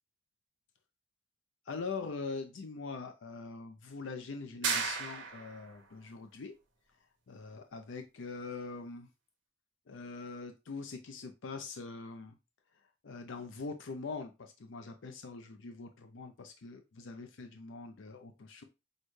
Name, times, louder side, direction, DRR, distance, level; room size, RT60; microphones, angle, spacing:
voice 1, 1.7-6.6 7.3-9.1 9.9-12.4 13.0-18.6, left 4 dB, 70° left, 6 dB, 0.5 m, -43 dB
sound 1, 4.6-5.7, right 5 dB, 70° right, 1.2 m, -34 dB
6.3 x 2.2 x 3.1 m, 0.26 s
head